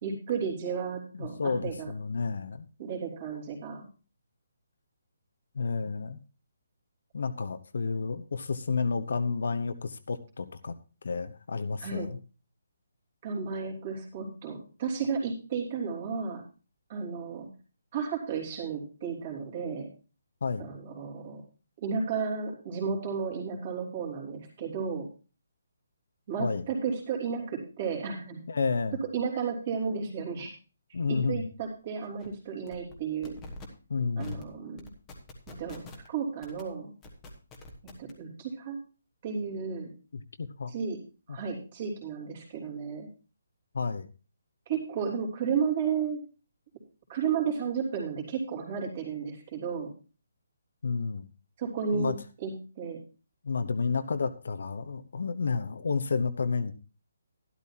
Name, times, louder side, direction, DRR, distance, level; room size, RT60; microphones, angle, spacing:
voice 1, 0.0-1.9 2.8-3.9 5.8-5.9 11.8-12.1 13.2-16.4 16.9-17.5 17.9-19.9 20.6-21.4 21.8-25.1 26.3-28.4 29.0-30.5 31.1-33.3 34.2-34.9 35.5-36.9 38.0-38.8 39.2-39.9 40.7-41.0 41.3-43.1 44.7-46.2 47.1-49.9 51.6-52.1 52.4-53.0, right 6 dB, 25° right, 0 dB, 3.1 m, -33 dB
voice 2, 1.2-2.6 5.5-6.2 7.1-10.7 11.0-12.2 20.4-20.7 26.4-26.6 28.5-29.0 30.9-31.4 33.9-34.5 40.1-40.7 41.3-41.4 43.7-44.1 50.8-51.3 51.9-52.2 53.4-56.7, left 4 dB, 55° left, 10 dB, 0.9 m, -31 dB
sound 1, 31.6-31.7 32.0-32.3 32.7-33.0 33.2-33.7 34.2-34.4 34.8-36.1 36.4-36.6 37.0-38.1, left 2 dB, 10° left, 1.3 m, -46 dB
13.0 x 12.5 x 2.8 m, 0.34 s
hypercardioid pair, 180°, 0 cm